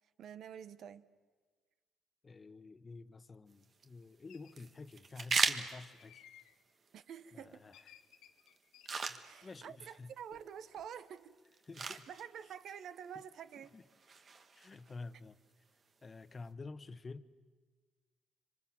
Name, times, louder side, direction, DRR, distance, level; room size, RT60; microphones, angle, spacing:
voice 1, 0.2-1.0 6.9-7.6 9.2-11.4 11.8-13.7, right 8 dB, 70° right, 14 dB, 1.1 m, -48 dB
voice 2, 2.2-6.2 7.3-7.9 9.1-10.1 11.7-12.1 13.7-13.8 14.5-15.3 16.0-17.3, left 3 dB, 35° left, 13 dB, 1.2 m, -50 dB
sound 1, 3.5-16.5, right 5 dB, 50° right, 1.8 m, -42 dB
sound 2, 4.3-4.6 6.0-6.6 7.7-9.1 10.3-10.5 10.7-11.2, left 11 dB, 85° left, 1.3 m, -61 dB
26.0 x 24.5 x 7.5 m, 1.4 s
supercardioid pair, 70°, 0 cm